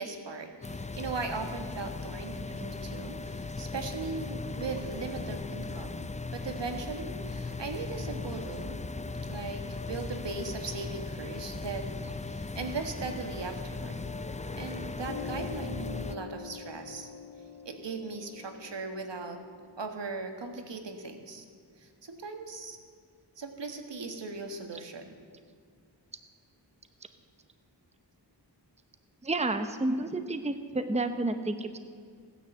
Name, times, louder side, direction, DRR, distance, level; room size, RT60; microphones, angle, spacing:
voice 1, 0.0-8.8 9.3-14.0 14.6-17.1 17.6-19.4 19.8-21.4 21.8-22.8 23.4-25.2, right 4 dB, 80° right, 5 dB, 1.6 m, -38 dB
sound 1, 0.6-16.2, left 3 dB, 15° left, 0.4 m, -38 dB
Piano, 14.0-21.1, left 6 dB, 70° left, 1.3 m, -45 dB
voice 2, 29.2-31.8, right 2 dB, 15° right, 9 dB, 0.8 m, -30 dB
16.5 x 9.9 x 7.8 m, 2.1 s
wide cardioid pair, 95°, 42 cm